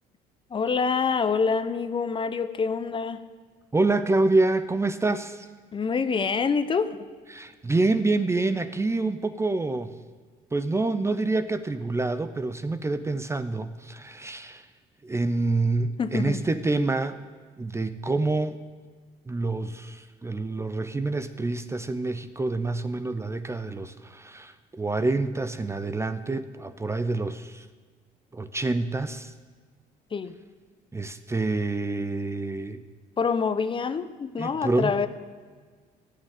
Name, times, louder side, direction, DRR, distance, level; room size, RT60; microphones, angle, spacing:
voice 1, 0.5-3.2 5.7-7.0 16.0-16.5 30.1-30.3 33.2-35.1, left 5 dB, 30° left, 0.7 m, -26 dB
voice 2, 3.7-5.5 7.3-9.9 10.5-14.7 15.0-17.2 17.6-18.6 19.3-27.7 28.3-29.3 30.9-32.8 34.4-35.1, right 2 dB, 15° right, 0.6 m, -27 dB
13.0 x 6.6 x 9.1 m
cardioid pair, 110°, 17 cm